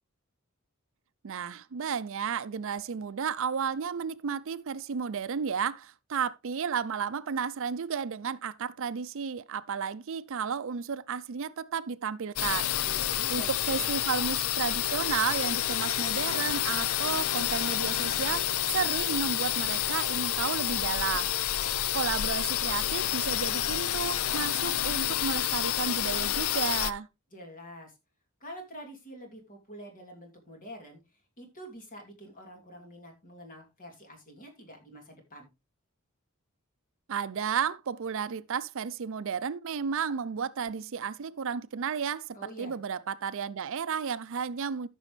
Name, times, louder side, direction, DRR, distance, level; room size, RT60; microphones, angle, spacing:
voice 1, 1.2-12.7 13.3-21.6 21.9-27.1 37.1-44.9, right 6 dB, 65° right, 0.5 m, -33 dB
sound 1, 12.4-26.9, left 12 dB, 70° left, 0.5 m, -29 dB
voice 2, 12.8-13.9 27.3-27.9 28.4-31.0 31.4-35.5 42.3-42.8, equal, 40° left, 2.8 m, -47 dB
14.0 x 6.2 x 3.2 m
head